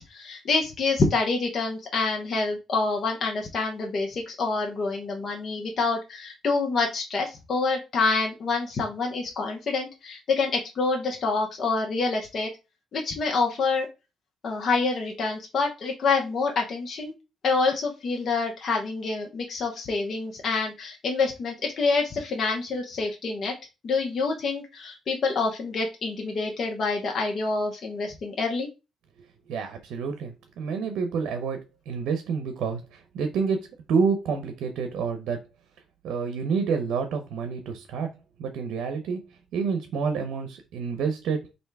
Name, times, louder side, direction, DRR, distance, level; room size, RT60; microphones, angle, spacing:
voice 1, 0.0-12.5 12.9-13.9 14.4-17.1 17.4-23.5 23.8-28.7, left 4 dB, 55° left, 1 dB, 0.9 m, -27 dB
voice 2, 29.5-31.6 31.9-35.4 36.0-38.1 38.4-39.2 39.5-41.5, right 5 dB, 80° right, 7 dB, 0.6 m, -28 dB
3.3 x 2.7 x 4.6 m, 0.27 s
cardioid pair, 90°, 0 cm